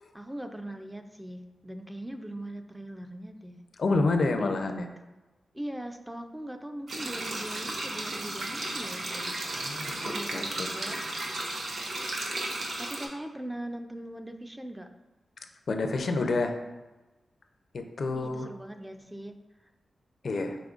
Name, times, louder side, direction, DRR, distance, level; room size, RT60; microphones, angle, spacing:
voice 1, 0.1-3.6 4.4-4.6 5.5-9.3 10.1-11.0 12.8-14.9 18.1-19.4, right 1 dB, 10° right, 6 dB, 0.3 m, -40 dB
voice 2, 3.8-4.9 9.6-10.7 15.7-16.6 17.7-18.5 20.2-20.6, left 3 dB, 65° left, 6 dB, 0.4 m, -29 dB
sound 1, 6.9-13.1, right 2 dB, 70° right, 0.8 m, -34 dB
5.0 x 4.1 x 2.4 m, 1.1 s
wide cardioid pair, 90°, 0 cm